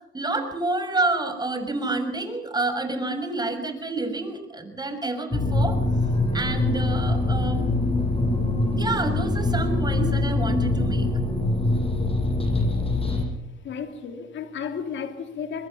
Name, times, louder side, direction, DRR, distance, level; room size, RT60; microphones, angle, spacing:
voice 1, 0.1-5.8 6.3-8.0 8.7-11.1, right 2 dB, 20° right, 6.4 m, -28 dB
sound 1, 5.3-13.2, left 2 dB, 30° left, 7.6 m, -23 dB
voice 2, 13.6-15.7, left 6 dB, 70° left, 3.4 m, -33 dB
24.5 x 22.0 x 5.8 m
cardioid pair, 90°, 20 cm